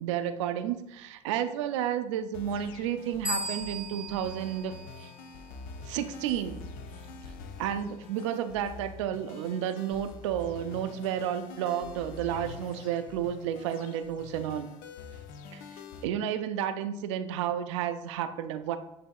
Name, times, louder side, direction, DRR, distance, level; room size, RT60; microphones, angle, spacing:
voice 1, 0.0-5.1 5.8-6.7 7.6-14.7 15.5-18.8, right 9 dB, 85° right, 9 dB, 0.4 m, -32 dB
sound 1, 2.3-16.0, left 4 dB, 70° left, 0.5 m, -46 dB
sound 2, 3.2-5.7, equal, 20° left, 1.0 m, -37 dB
8.2 x 2.8 x 2.3 m, 0.88 s
hypercardioid pair, 75°, 15 cm